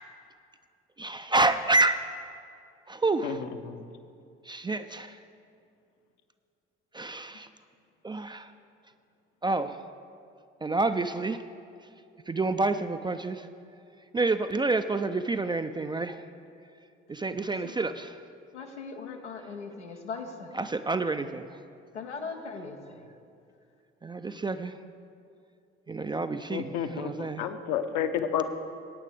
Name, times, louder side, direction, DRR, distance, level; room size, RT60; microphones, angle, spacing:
voice 1, 1.0-2.1 2.9-3.4 4.4-5.2 6.9-7.5 8.0-8.5 9.4-9.8 10.6-11.4 12.3-13.5 14.1-16.3 17.1-18.2 20.5-21.6 24.0-24.8 25.9-27.5, right 2 dB, 15° right, 9 dB, 0.4 m, -28 dB
voice 2, 18.5-20.5 21.9-23.0, left 4 dB, 90° left, 2 dB, 0.8 m, -39 dB
voice 3, 26.5-28.5, left 8 dB, 60° left, 8 dB, 0.8 m, -30 dB
20.0 x 9.0 x 3.4 m, 2.5 s
figure-of-eight pair, 50°, 34 cm